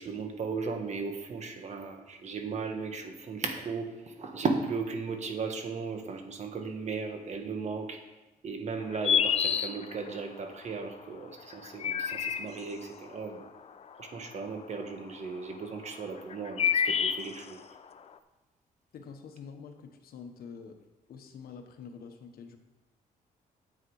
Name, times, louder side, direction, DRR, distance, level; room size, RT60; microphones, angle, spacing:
voice 1, 0.0-8.0 8.4-13.4 14.0-17.6, right 4 dB, 50° right, 5 dB, 1.5 m, -36 dB
sound 1, 8.8-10.2 11.5-12.8 14.0-14.8 15.8-17.8, left 7 dB, 45° left, 0.6 m, -28 dB
voice 2, 18.9-20.8 21.1-22.6, left 6 dB, 75° left, 5 dB, 1.3 m, -46 dB
9.7 x 7.6 x 4.8 m, 1.1 s
cardioid pair, 110°, 15 cm